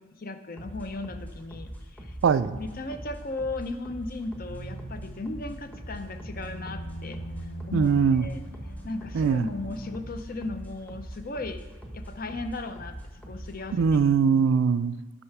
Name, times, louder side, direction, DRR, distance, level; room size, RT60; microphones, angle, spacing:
voice 1, 0.0-2.2 2.5-7.2 7.7-8.4 8.8-11.6 11.9-13.8, left 2 dB, 45° left, 8 dB, 0.6 m, -36 dB
sound 1, 0.6-14.2, equal, 10° left, 0.9 m, -42 dB
voice 2, 2.2-2.6 7.7-8.3 9.1-9.5 13.8-15.0, right 6 dB, 65° right, 14 dB, 0.3 m, -21 dB
sound 2, 4.5-10.0, right 1 dB, 80° left, 3.3 m, -42 dB
9.8 x 5.5 x 5.9 m, 1.2 s
head